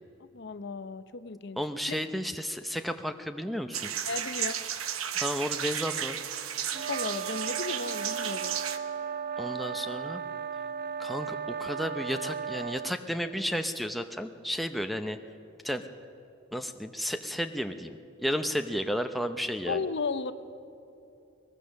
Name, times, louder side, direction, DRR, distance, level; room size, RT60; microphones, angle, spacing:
voice 1, 0.3-1.6 1.9-2.0 4.1-4.6 6.9-8.6 19.7-20.3, left 4 dB, 55° left, 12 dB, 0.7 m, -34 dB
voice 2, 1.6-3.9 5.2-6.2 9.4-10.2 11.0-15.2 15.6-15.8 16.5-19.8, equal, ahead, 6 dB, 0.6 m, -32 dB
sound 1, 3.7-8.8, right 9 dB, 80° right, 1.0 m, -33 dB
sound 2, 6.7-13.0, right 7 dB, 45° right, 0.6 m, -36 dB
21.5 x 20.0 x 6.4 m, 2.8 s
head